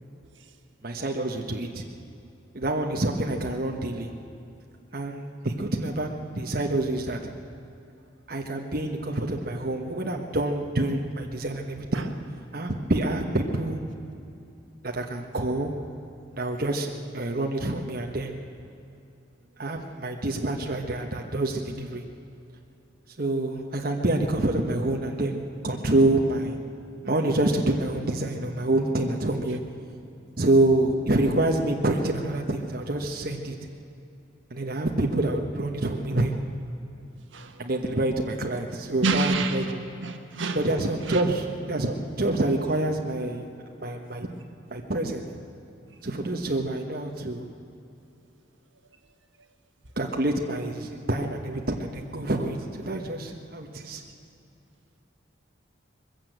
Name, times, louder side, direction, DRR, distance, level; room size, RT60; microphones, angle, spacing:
voice 1, 0.8-1.8 2.5-4.1 4.9-7.3 8.3-12.1 12.5-13.8 14.8-15.7 16.3-18.3 19.6-22.0 23.2-26.6 27.0-29.6 30.4-33.5 34.5-36.3 37.6-39.8 40.5-43.5 43.8-44.3 44.7-45.2 46.0-47.5 50.0-54.0, right 1 dB, 45° right, 1 dB, 1.2 m, -27 dB
voice 2, 37.3-37.7 39.0-39.7 40.0-40.6 41.0-41.2, right 3 dB, 75° right, 6 dB, 1.4 m, -27 dB
21.0 x 15.5 x 7.9 m, 2.7 s
head